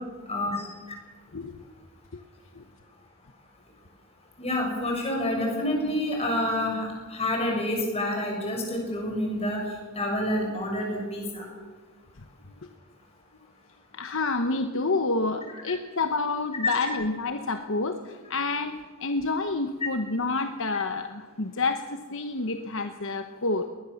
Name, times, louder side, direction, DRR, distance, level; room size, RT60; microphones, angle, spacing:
voice 1, 0.3-0.7 4.4-11.4 19.8-19.9, left 1 dB, 30° left, 0 dB, 6.7 m, -28 dB
voice 2, 13.9-23.7, left 3 dB, 60° left, 7 dB, 1.2 m, -28 dB
21.5 x 20.0 x 7.2 m, 1.4 s
head